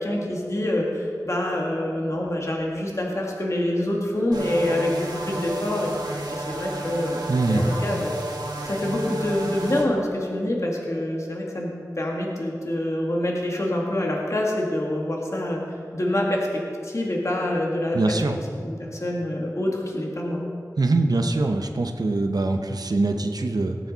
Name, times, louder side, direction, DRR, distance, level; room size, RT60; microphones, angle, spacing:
voice 1, 0.0-7.2 7.5-8.1 8.6-15.6 15.9-18.2 18.5-20.4, left 1 dB, 45° left, -1 dB, 1.7 m, -26 dB
sound 1, 4.3-9.8, right 2 dB, 90° right, 1.8 m, -32 dB
voice 2, 7.3-7.7 17.9-18.4 20.8-23.8, right 2 dB, 70° right, 5 dB, 0.8 m, -23 dB
18.5 x 8.4 x 4.0 m, 2.4 s
wide cardioid pair, 65°, 7 cm